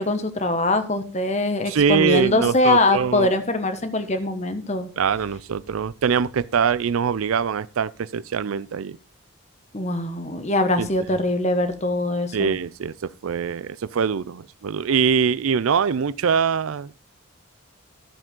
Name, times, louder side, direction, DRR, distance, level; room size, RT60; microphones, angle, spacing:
voice 1, 0.0-4.9 9.7-12.6, left 2 dB, 30° left, 1.2 m, -22 dB
voice 2, 1.7-3.3 5.0-9.0 10.8-10.9 12.3-16.9, right 6 dB, 80° right, 0.4 m, -23 dB
12.0 x 7.4 x 3.7 m
head